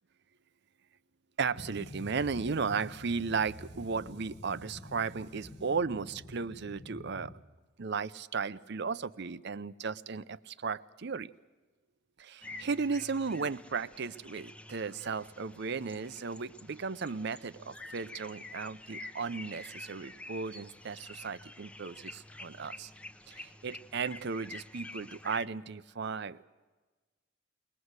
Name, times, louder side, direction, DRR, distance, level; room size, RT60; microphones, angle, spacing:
voice 1, 1.4-7.3 7.8-11.3 12.2-22.9 23.3-26.4, right 5 dB, 55° right, 15 dB, 0.6 m, -35 dB
sound 1, 1.5-7.4, left 1 dB, 35° left, 1.4 m, -48 dB
sound 2, 12.4-25.5, left 2 dB, 5° left, 0.8 m, -48 dB
21.5 x 20.5 x 8.1 m, 1.3 s
head